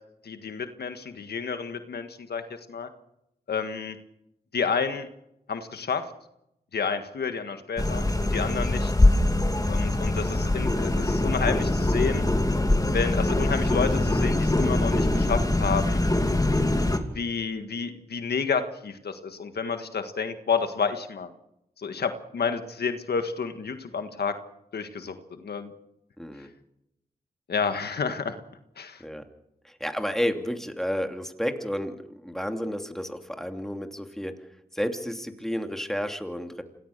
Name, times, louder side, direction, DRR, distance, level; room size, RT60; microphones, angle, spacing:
voice 1, 0.2-2.4 2.7-2.9 3.5-4.0 4.5-5.1 5.5-6.0 6.7-8.9 9.7-12.2 12.9-16.0 17.1-21.3 21.8-24.3 24.7-25.7 27.5-28.4 28.8-29.0, left 5 dB, 90° left, 8 dB, 1.7 m, -30 dB
sound 1, 7.8-17.0, left 1 dB, 20° left, 2.6 m, -23 dB
voice 2, 26.2-26.5 29.0-29.2 29.6-32.0 32.2-34.3 34.7-36.6, equal, ahead, 5 dB, 2.8 m, -31 dB
27.0 x 18.0 x 6.7 m, 0.84 s
cardioid pair, 55°, 16 cm